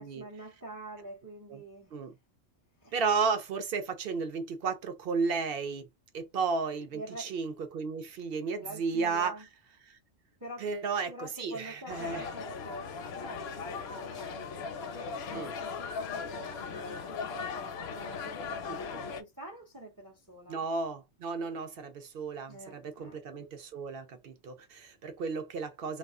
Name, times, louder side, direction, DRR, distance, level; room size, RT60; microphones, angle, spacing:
voice 1, 0.0-2.0 2.8-2.9 6.9-7.6 8.6-9.5 10.4-10.7 11.1-14.6 14.9-20.6 22.5-23.2, right 1 dB, 25° right, 0.5 m, -46 dB
voice 2, 2.9-5.9 6.1-9.3 10.6-12.3 15.3-15.5 18.7-18.8 20.5-26.0, right 5 dB, 60° right, 0.7 m, -33 dB
sound 1, 11.9-19.2, left 5 dB, 65° left, 0.7 m, -38 dB
2.3 x 2.3 x 3.5 m
omnidirectional pair, 1.3 m